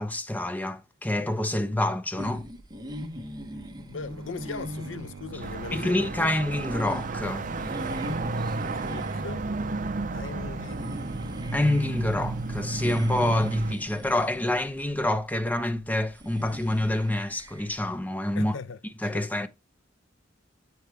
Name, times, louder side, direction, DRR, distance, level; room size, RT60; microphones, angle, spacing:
voice 1, 0.0-2.4 5.7-7.5 11.5-18.6 19.0-19.5, left 1 dB, 10° left, 0.6 m, -27 dB
sound 1, 2.2-17.9, equal, 20° right, 1.1 m, -41 dB
voice 2, 3.9-6.3 8.6-9.4 10.1-10.8 18.3-19.3, left 4 dB, 75° left, 0.6 m, -39 dB
sound 2, 4.1-15.5, right 5 dB, 80° right, 0.4 m, -44 dB
sound 3, 5.4-13.7, right 2 dB, 40° right, 0.6 m, -32 dB
8.9 x 4.7 x 3.3 m
head